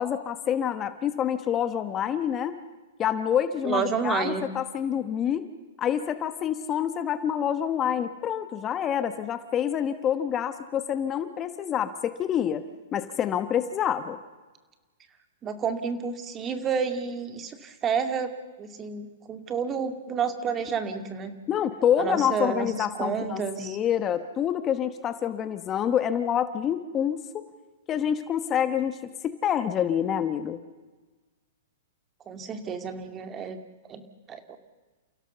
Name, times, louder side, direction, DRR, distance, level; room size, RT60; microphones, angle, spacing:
voice 1, 0.0-2.6 3.0-5.5 5.8-12.7 12.9-14.2 21.5-27.4 27.9-29.0 29.2-30.6, left 9 dB, 25° left, 11 dB, 1.2 m, -27 dB
voice 2, 3.6-4.5 15.4-18.3 18.6-21.4 22.0-23.8 32.3-33.6 33.9-34.6, right 6 dB, 25° right, 8 dB, 2.2 m, -30 dB
29.5 x 16.5 x 6.9 m, 1.3 s
hypercardioid pair, 130°, 0 cm